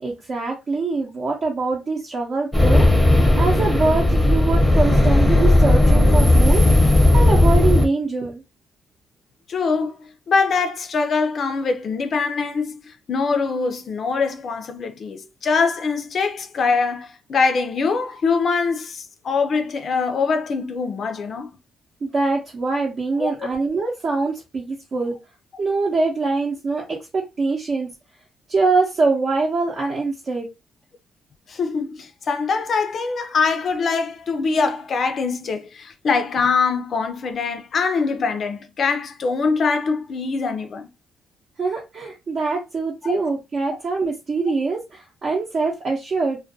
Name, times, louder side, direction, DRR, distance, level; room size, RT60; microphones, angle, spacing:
voice 1, 0.0-2.9 3.4-6.6 7.1-8.4 22.0-25.2 25.6-27.9 28.5-30.5 41.6-46.4, right 3 dB, 50° right, 0.6 m, -23 dB
sound 1, 2.5-7.9, left 1 dB, 5° left, 0.7 m, -15 dB
voice 2, 9.5-9.9 10.3-12.8 13.1-21.5 23.2-23.3 31.5-40.9 43.0-43.1, left 4 dB, 55° left, 0.4 m, -23 dB
2.2 x 2.2 x 2.6 m
cardioid pair, 90°, 0 cm